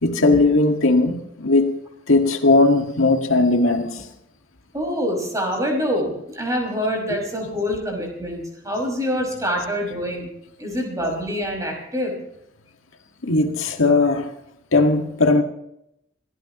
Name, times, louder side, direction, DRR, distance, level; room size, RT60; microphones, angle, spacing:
voice 1, 0.0-1.7 2.1-4.1 13.2-14.3 14.7-15.4, left 2 dB, 85° left, 1.8 m, -18 dB
voice 2, 4.7-10.3 10.6-12.1, equal, 15° right, 5.7 m, -25 dB
26.5 x 15.0 x 3.0 m
head